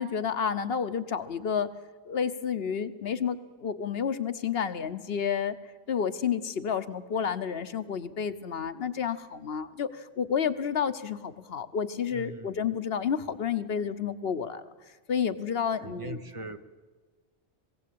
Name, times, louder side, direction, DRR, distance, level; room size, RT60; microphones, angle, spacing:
voice 1, 0.0-1.7 2.1-5.6 5.9-14.6 15.1-16.2, left 7 dB, 60° left, 11 dB, 1.0 m, -30 dB
voice 2, 12.1-12.6 15.8-16.6, right 3 dB, 30° right, 10 dB, 0.8 m, -41 dB
21.0 x 16.0 x 8.6 m, 1.4 s
omnidirectional pair, 1.1 m